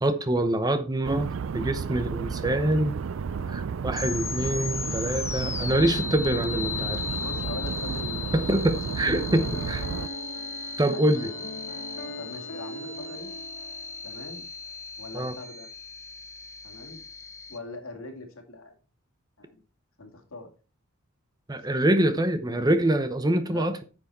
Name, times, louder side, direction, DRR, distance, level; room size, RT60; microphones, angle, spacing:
voice 1, 0.0-3.0 3.5-7.0 8.3-9.8 10.8-11.3 15.1-15.3 21.5-23.8, right 1 dB, 20° right, 0.7 m, -25 dB
sound 1, 1.0-10.1, right 6 dB, 65° right, 0.4 m, -32 dB
sound 2, 3.9-17.6, left 5 dB, 15° left, 0.5 m, -36 dB
voice 2, 7.1-9.4 9.9-10.2 10.9-11.3 12.1-13.3 14.0-14.4 15.0-15.7 16.6-17.0 17.5-18.7 19.4-19.5 20.0-20.5 23.5-23.7, left 2 dB, 75° left, 2.5 m, -42 dB
Piano, 9.0-14.3, equal, 50° left, 1.0 m, -41 dB
9.8 x 6.2 x 4.3 m
head